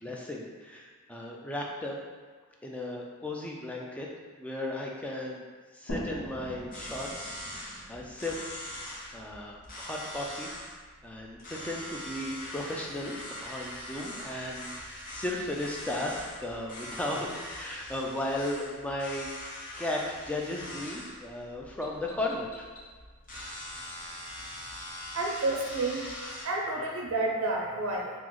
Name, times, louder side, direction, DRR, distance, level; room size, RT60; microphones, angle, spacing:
voice 1, 0.0-2.0 2.6-4.1 4.4-5.4 5.7-8.4 8.7-10.5 11.0-19.3 19.8-22.7, left 1 dB, 5° left, -2 dB, 0.3 m, -36 dB
sound 1, 5.9-9.4, equal, 80° left, 0.8 m, -42 dB
sound 2, 6.7-26.4, left 1 dB, 40° left, 0.7 m, -42 dB
voice 2, 25.1-26.1 26.4-28.1, right 2 dB, 85° right, 0 dB, 0.4 m, -30 dB
3.7 x 2.0 x 3.0 m, 1.5 s
head